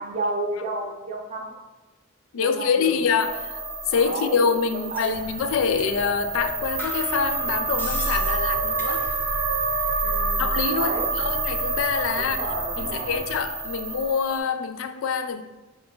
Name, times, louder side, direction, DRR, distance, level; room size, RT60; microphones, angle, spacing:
voice 1, 0.0-1.6 2.3-3.0 3.9-4.4 4.7-5.2 10.0-11.1 12.2-13.2, right 2 dB, 35° right, -2 dB, 0.6 m, -32 dB
voice 2, 2.3-3.6 3.9-9.1 10.4-12.4 12.8-15.4, left 6 dB, 65° left, 9 dB, 0.3 m, -25 dB
sound 1, 3.2-14.4, right 3 dB, 70° right, 0.8 m, -28 dB
sound 2, 4.9-5.2 5.8-5.9 6.3-6.4 6.8-9.4 9.7-10.3, left 1 dB, 10° left, 0.5 m, -40 dB
sound 3, 5.1-13.5, equal, 35° left, 1.0 m, -44 dB
4.9 x 2.4 x 3.6 m, 1.2 s
head